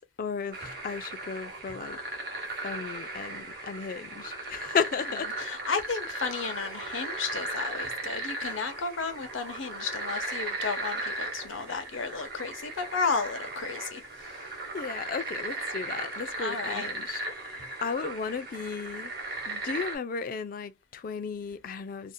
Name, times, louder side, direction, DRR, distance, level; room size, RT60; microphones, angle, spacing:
voice 1, 0.2-2.0 2.6-5.3 6.8-7.2 8.4-8.7 14.7-19.1 19.5-22.1, left 5 dB, 45° left, 0.3 m, -35 dB
sound 1, 0.5-20.0, right 2 dB, 50° right, 0.9 m, -37 dB
voice 2, 5.0-14.0 16.4-16.9, left 4 dB, 80° left, 0.7 m, -33 dB
2.6 x 2.1 x 2.5 m
head